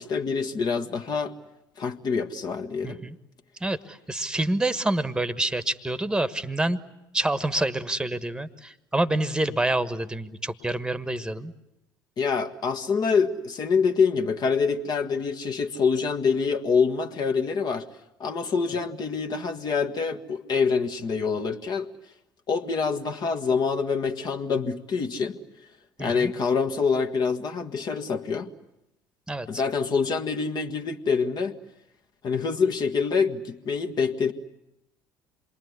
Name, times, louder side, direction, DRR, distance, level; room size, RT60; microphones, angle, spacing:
voice 1, 0.0-1.3 1.8-3.0 12.2-17.8 18.2-21.9 22.5-25.4 26.0-28.5 29.5-31.6 32.2-34.3, left 5 dB, 40° left, 6 dB, 1.6 m, -26 dB
voice 2, 2.8-3.2 3.6-6.8 7.1-11.5 26.0-26.3 29.3-29.6, right 2 dB, 5° right, 13 dB, 1.4 m, -27 dB
27.5 x 22.5 x 9.6 m, 0.89 s
figure-of-eight pair, 60°, 10 cm